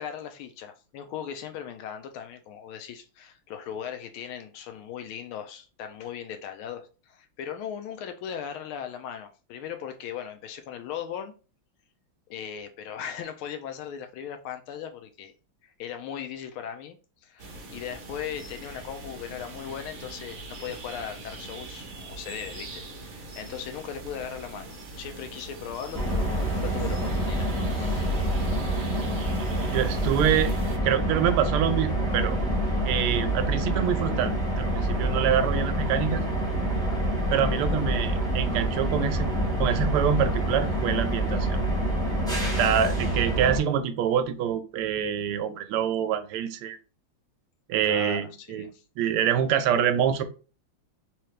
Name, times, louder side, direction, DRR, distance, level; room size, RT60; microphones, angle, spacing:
voice 1, 0.0-11.3 12.3-15.3 15.6-17.0 17.2-28.3 36.9-37.1 42.9-43.0 47.8-48.8, left 8 dB, 80° left, 1.4 m, -38 dB
sound 1, 17.4-30.8, right 2 dB, 55° right, 1.0 m, -42 dB
sound 2, 25.9-43.6, right 1 dB, 5° left, 0.5 m, -27 dB
voice 2, 29.7-30.5 30.8-32.4 32.8-36.2 37.3-39.3 39.6-41.5 42.4-46.8 47.7-48.7 49.0-50.2, right 9 dB, 80° right, 1.5 m, -26 dB
3.7 x 3.0 x 3.2 m
omnidirectional pair, 2.4 m